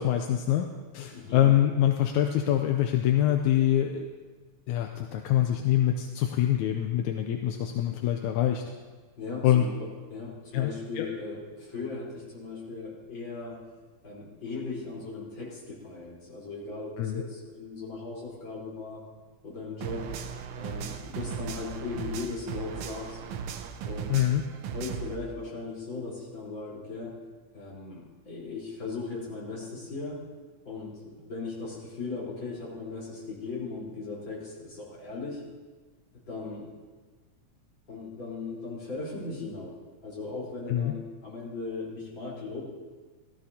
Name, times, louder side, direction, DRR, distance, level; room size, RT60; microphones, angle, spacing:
voice 1, 0.0-4.1 4.7-8.6 9.4-9.7 10.5-10.7 11.0-11.1 17.0-17.2 24.1-24.4 40.7-40.9, left 11 dB, 80° left, 4 dB, 2.0 m, -25 dB
voice 2, 1.1-1.5 9.2-13.6 14.0-19.0 19.4-20.1 20.6-23.2 23.8-24.2 24.7-27.2 27.5-30.2 30.6-35.4 36.3-36.7 37.9-39.7 40.0-42.6, left 3 dB, 40° left, -7 dB, 4.7 m, -38 dB
sound 1, 19.8-25.2, right 7 dB, 80° right, 1.3 m, -37 dB
16.5 x 14.5 x 2.8 m, 1.4 s
omnidirectional pair, 3.3 m